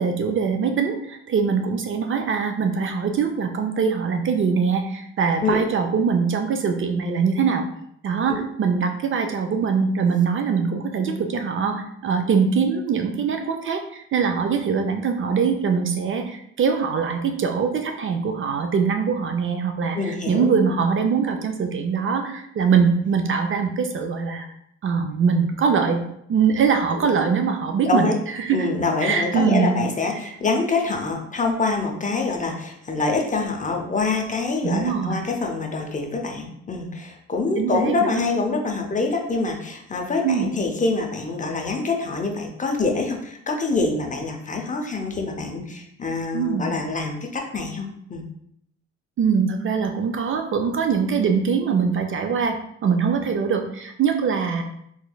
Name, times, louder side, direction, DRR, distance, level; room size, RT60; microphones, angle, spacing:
voice 1, 0.0-7.6 8.0-24.5 24.8-26.0 26.3-28.1 28.4-28.7 29.0-29.8 30.1-30.2 34.6-35.2 37.6-38.2 40.2-40.5 46.3-46.7 49.2-54.6, right 6 dB, 45° right, 5 dB, 0.4 m, -22 dB
voice 2, 20.0-20.5 27.0-27.1 27.8-28.2 28.5-48.2, left 3 dB, 25° left, 2 dB, 0.6 m, -25 dB
3.4 x 3.1 x 2.2 m, 0.72 s
cardioid pair, 90°, 30 cm